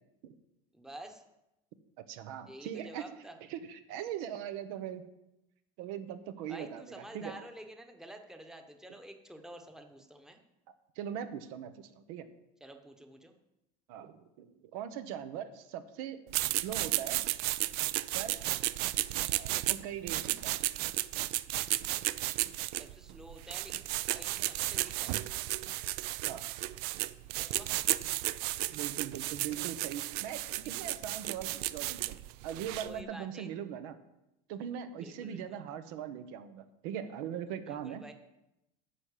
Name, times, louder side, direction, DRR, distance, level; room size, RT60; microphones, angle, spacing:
voice 1, 0.7-1.2 2.5-3.4 6.5-10.4 12.6-13.3 22.8-25.2 27.3-27.7 32.8-33.5 34.9-35.6 37.6-38.1, right 1 dB, 5° right, 5 dB, 1.0 m, -49 dB
voice 2, 2.1-3.1 3.5-5.0 5.8-7.4 11.0-12.3 13.9-16.2 16.5-17.2 18.1-18.4 19.3-20.6 26.3-26.5 28.7-32.2 32.4-34.0 34.5-38.1, right 9 dB, 80° right, 11 dB, 1.0 m, -40 dB
sound 1, 16.3-33.0, right 17 dB, 60° right, 0.4 m, -34 dB
9.7 x 5.9 x 8.3 m, 0.90 s
cardioid pair, 145°, 18 cm